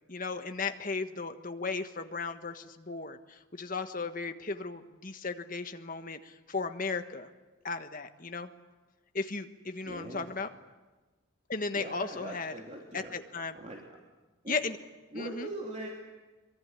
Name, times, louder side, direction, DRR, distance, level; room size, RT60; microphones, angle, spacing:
voice 1, 0.1-7.3 7.6-8.5 9.1-10.5 11.5-12.5 12.9-13.5 14.5-14.8 15.1-15.5, left 4 dB, 40° left, 8 dB, 1.4 m, -36 dB
voice 2, 9.8-10.3 11.7-13.1 13.5-13.8 14.4-14.6 15.1-15.9, right 1 dB, 35° right, -1 dB, 3.2 m, -41 dB
23.5 x 23.0 x 9.8 m, 1.2 s
head